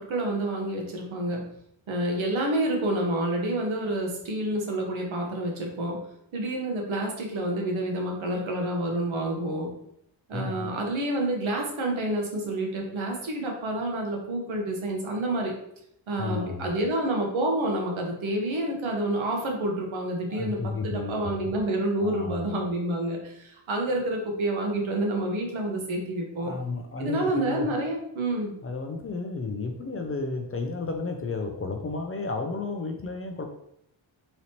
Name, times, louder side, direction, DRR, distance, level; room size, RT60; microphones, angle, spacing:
voice 1, 0.0-1.4 1.9-6.0 6.3-9.7 10.3-15.5 16.1-26.5 27.0-28.5, right 1 dB, 75° right, 1 dB, 1.1 m, -28 dB
voice 2, 10.3-10.7 16.2-16.7 20.3-21.5 22.0-22.5 26.4-27.7 28.6-33.4, left 3 dB, 30° left, 4 dB, 0.4 m, -32 dB
3.9 x 3.0 x 2.8 m, 0.74 s
wide cardioid pair, 110°, 48 cm